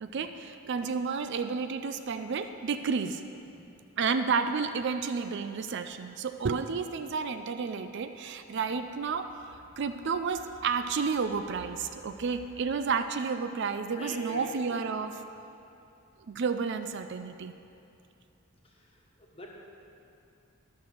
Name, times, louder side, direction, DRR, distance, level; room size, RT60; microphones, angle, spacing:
voice 1, 0.0-3.2 4.0-15.2 16.3-17.5, right 5 dB, 55° right, 9 dB, 0.4 m, -31 dB
voice 2, 3.4-3.8 8.5-8.6 14.0-14.5 18.6-19.5, right 2 dB, 25° left, -1 dB, 1.3 m, -44 dB
sound 1, 8.7-13.0, left 1 dB, 90° left, 1.0 m, -56 dB
12.0 x 6.1 x 6.4 m, 2.7 s
head